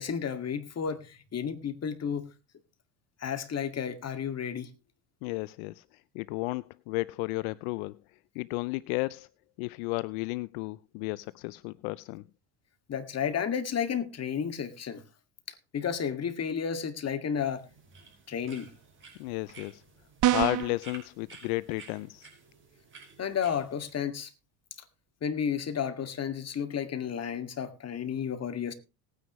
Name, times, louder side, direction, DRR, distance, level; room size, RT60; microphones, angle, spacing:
voice 1, 0.0-2.3 3.2-4.7 12.9-15.0 15.7-17.7 18.3-18.7 23.2-24.3 25.2-28.7, left 7 dB, 35° left, 2.1 m, -32 dB
voice 2, 5.2-5.8 6.1-8.0 8.4-9.3 9.6-12.2 19.2-19.8 20.2-22.3, left 24 dB, 75° left, 0.5 m, -33 dB
sound 1, 17.3-23.9, right 4 dB, 30° right, 5.4 m, -53 dB
sound 2, 20.2-20.8, right 13 dB, 45° right, 0.8 m, -24 dB
19.0 x 9.7 x 3.1 m
supercardioid pair, 85°, 43 cm